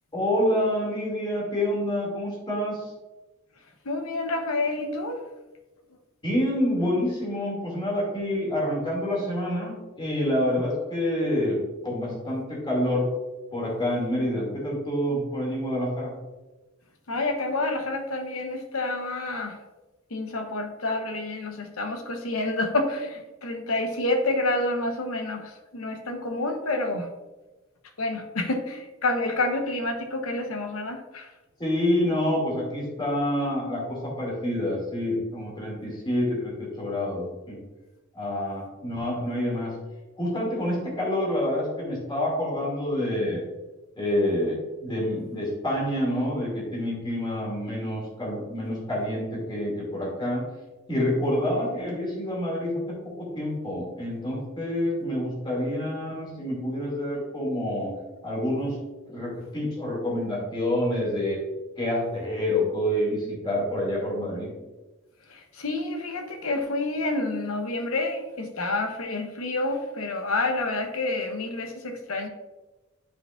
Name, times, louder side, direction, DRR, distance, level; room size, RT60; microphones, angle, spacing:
voice 1, 0.1-2.9 6.2-13.1 13.5-16.1 31.6-37.6 38.1-39.7 40.2-43.4 44.0-44.5 44.8-50.5 50.9-57.9 58.2-58.8 59.1-61.4 61.8-64.5, left 1 dB, 25° left, -4 dB, 2.3 m, -27 dB
voice 2, 3.8-5.2 17.1-19.6 20.1-27.1 28.0-31.3 65.3-72.3, left 2 dB, 80° left, 6 dB, 1.0 m, -28 dB
9.7 x 5.1 x 2.5 m, 1.1 s
head